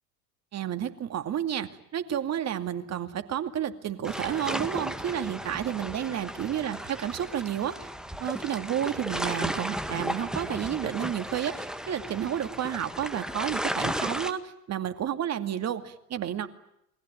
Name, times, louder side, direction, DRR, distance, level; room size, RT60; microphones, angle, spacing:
voice 1, 0.5-7.8 8.2-16.5, right 10 dB, 35° right, 9 dB, 2.5 m, -31 dB
sound 1, 4.0-14.3, equal, ahead, 1.7 m, -34 dB
28.5 x 22.0 x 9.2 m, 0.81 s
figure-of-eight pair, 80°, 47 cm